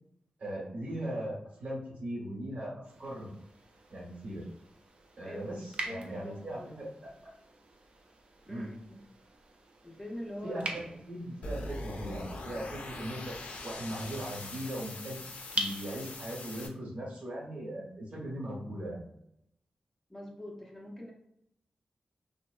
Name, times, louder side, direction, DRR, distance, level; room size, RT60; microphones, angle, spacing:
voice 1, 0.4-3.3 3.9-4.4 5.2-7.3 8.5-8.7 10.4-13.4 13.6-15.2 15.5-19.1, right 1 dB, 60° right, -3 dB, 1.0 m, -39 dB
sound 1, 2.8-16.4, right 1 dB, 45° right, 0.4 m, -44 dB
voice 2, 5.8-6.7 8.5-9.1 9.8-10.8 20.1-21.1, left 1 dB, 10° left, -2 dB, 0.5 m, -44 dB
sound 2, 11.4-16.7, left 2 dB, 65° left, 0.4 m, -42 dB
2.7 x 2.0 x 2.3 m, 0.78 s
wide cardioid pair, 95°, 3 cm